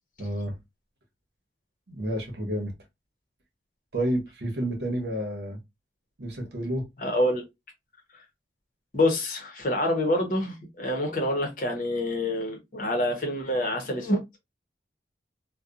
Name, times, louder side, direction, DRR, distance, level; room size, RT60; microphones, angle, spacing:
voice 1, 0.2-0.5 1.9-2.7 3.9-5.6 6.2-6.8, right 1 dB, 70° right, 0.9 m, -30 dB
voice 2, 7.0-7.4 8.9-14.4, left 1 dB, 45° left, 0.8 m, -26 dB
2.8 x 2.2 x 2.4 m
head